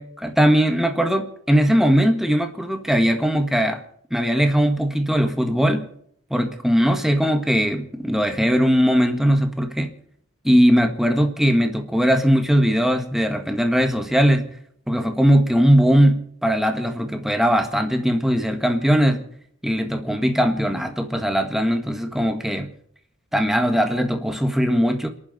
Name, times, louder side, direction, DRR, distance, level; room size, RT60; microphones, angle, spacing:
voice 1, 0.0-3.8 4.1-5.9 6.3-9.9 10.5-14.5 14.9-19.2 19.6-22.7 23.3-25.1, equal, ahead, 5 dB, 1.6 m, -19 dB
29.0 x 11.5 x 4.3 m, 0.65 s
head